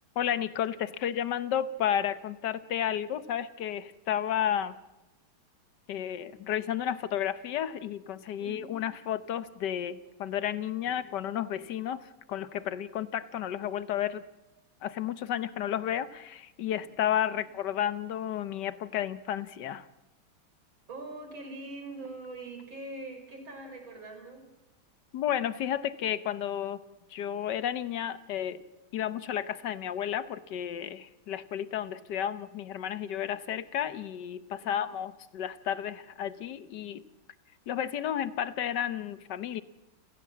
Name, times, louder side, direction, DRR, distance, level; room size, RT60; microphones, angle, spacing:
voice 1, 0.1-4.7 5.9-14.2 14.8-19.9 25.1-26.8 27.1-28.6 28.9-37.0 37.7-39.6, left 10 dB, 60° left, 14 dB, 1.4 m, -32 dB
voice 2, 8.4-8.8 10.8-11.0 17.3-17.5 20.9-24.4 34.6-34.9, right 2 dB, 65° right, 4 dB, 5.6 m, -43 dB
29.5 x 16.5 x 7.4 m, 1.0 s
omnidirectional pair, 2.4 m